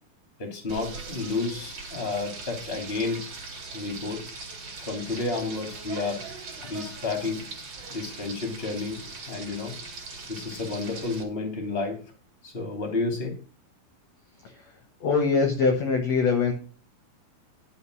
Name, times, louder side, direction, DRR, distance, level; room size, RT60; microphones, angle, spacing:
voice 1, 0.4-3.3 3.7-4.3 4.8-6.3 6.6-7.5 7.9-9.7 10.3-12.0 12.4-13.4, left 3 dB, 15° left, 3 dB, 2.5 m, -31 dB
Frying (food), 0.7-11.2, right 4 dB, 45° right, 3.3 m, -40 dB
voice 2, 15.0-16.5, left 4 dB, 60° left, 4 dB, 2.0 m, -22 dB
11.0 x 5.7 x 6.2 m, 0.37 s
omnidirectional pair, 4.4 m